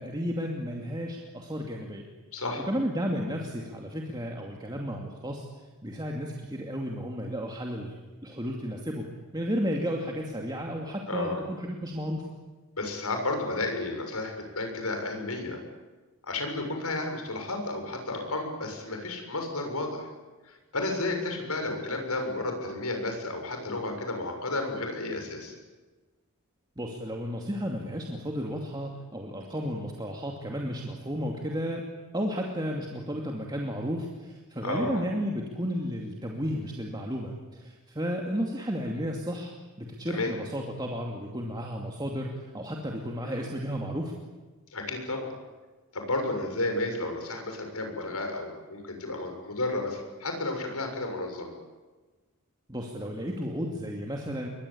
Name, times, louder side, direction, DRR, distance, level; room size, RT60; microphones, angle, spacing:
voice 1, 0.0-2.1 2.7-5.4 5.8-7.9 8.2-12.2 26.8-31.8 32.1-39.5 39.8-44.1 52.7-54.5, equal, 20° right, 0 dB, 2.5 m, -33 dB
voice 2, 2.3-2.6 11.1-11.4 12.8-15.6 16.2-20.1 20.4-25.5 34.6-35.0 40.1-40.3 43.2-43.5 44.7-45.3 45.9-51.5, left 2 dB, 80° left, 4 dB, 6.7 m, -32 dB
29.5 x 22.5 x 8.7 m, 1.2 s
head